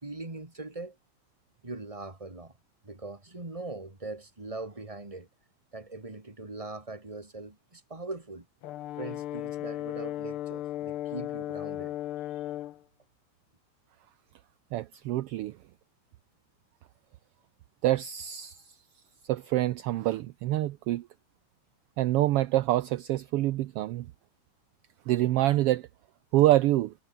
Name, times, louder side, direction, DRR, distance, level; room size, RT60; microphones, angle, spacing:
voice 1, 0.0-1.0 1.6-2.5 2.8-5.3 5.7-8.5 9.0-11.9, right 2 dB, 10° right, 2.8 m, -41 dB
Brass instrument, 8.6-12.8, left 13 dB, 70° left, 1.3 m, -36 dB
voice 2, 14.7-15.6 17.8-18.6 19.3-21.1 22.0-24.1 25.1-25.9 26.3-26.9, right 15 dB, 75° right, 1.4 m, -26 dB
omnidirectional pair, 3.3 m